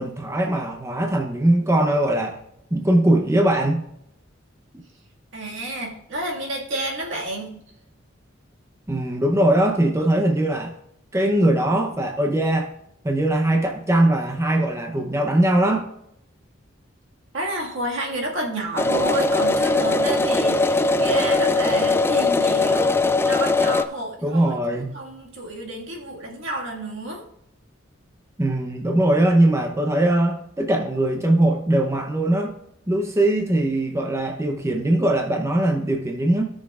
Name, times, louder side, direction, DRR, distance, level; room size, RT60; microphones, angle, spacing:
voice 1, 0.0-2.4 2.7-3.8 8.9-10.7 11.1-12.7 13.0-15.9 24.2-24.9 28.4-32.5 32.9-36.4, right 1 dB, 15° right, 3 dB, 0.7 m, -21 dB
voice 2, 5.3-7.6 17.3-24.6 24.9-27.2, right 1 dB, 70° right, -1 dB, 1.9 m, -30 dB
sound 1, 18.8-23.8, left 3 dB, 10° left, 0.3 m, -20 dB
16.5 x 6.3 x 2.4 m, 0.77 s
head